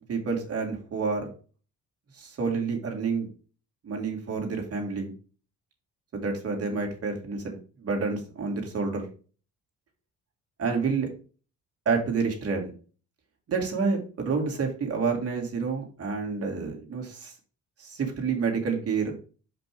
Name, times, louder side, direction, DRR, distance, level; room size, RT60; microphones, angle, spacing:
voice 1, 0.1-1.3 2.1-3.3 3.8-5.1 6.1-9.1 10.6-11.1 11.9-12.7 13.5-17.3 17.8-19.1, right 5 dB, 50° right, 1 dB, 2.8 m, -29 dB
5.4 x 5.2 x 4.7 m, 0.38 s
cardioid pair, 90°, 30 cm